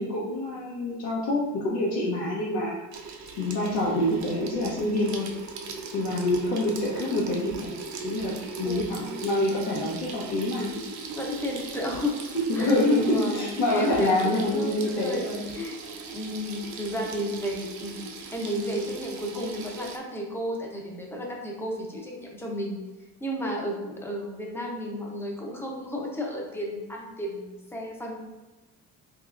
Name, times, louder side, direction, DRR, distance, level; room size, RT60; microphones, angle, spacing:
voice 1, 0.0-2.7 3.4-5.3 5.9-7.7 8.0-8.3 8.6-10.7 12.5-15.5, left 1 dB, 90° left, -7 dB, 0.8 m, -26 dB
Water tap faucet / Sink (filling or washing), 2.9-20.0, right 4 dB, 55° right, 0.5 m, -39 dB
voice 2, 8.6-9.1 11.1-12.1 12.5-15.8 16.1-18.0 18.3-22.8 23.2-28.2, equal, 5° left, -1 dB, 0.5 m, -33 dB
3.6 x 3.1 x 2.4 m, 1.1 s
cardioid pair, 130°, 35 cm